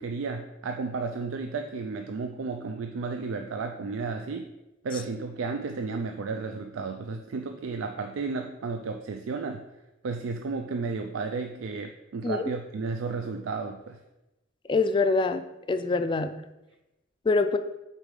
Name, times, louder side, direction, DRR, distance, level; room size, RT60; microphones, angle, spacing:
voice 1, 0.0-4.5 4.8-9.6 10.0-14.0, right 4 dB, 90° right, 6 dB, 0.4 m, -33 dB
voice 2, 14.7-16.4 17.3-17.6, left 3 dB, 25° left, 10 dB, 0.3 m, -25 dB
5.2 x 4.2 x 4.8 m, 0.99 s
head